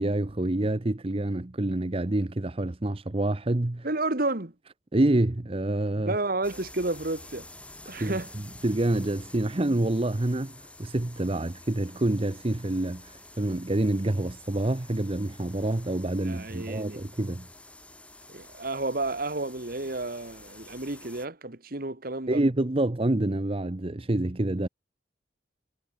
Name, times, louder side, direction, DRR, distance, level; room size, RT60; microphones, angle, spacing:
voice 1, 0.0-3.9 4.9-6.2 8.0-17.5 22.3-24.7, right 1 dB, 30° right, 0.8 m, -27 dB
voice 2, 3.8-4.5 5.9-7.5 7.9-8.3 16.2-17.0 18.3-22.4, right 2 dB, 50° right, 1.8 m, -31 dB
sound 1, 6.4-21.3, left 2 dB, 5° left, 4.4 m, -49 dB
head